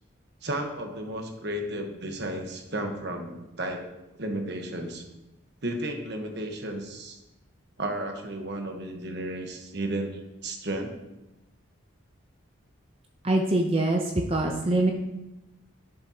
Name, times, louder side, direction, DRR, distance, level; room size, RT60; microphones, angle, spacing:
voice 1, 0.4-3.8 4.2-5.0 5.6-7.2 7.8-10.9, right 1 dB, 55° right, 3 dB, 1.2 m, -33 dB
voice 2, 13.2-14.9, right 2 dB, 30° right, 2 dB, 0.6 m, -24 dB
10.5 x 6.8 x 2.8 m, 0.98 s
head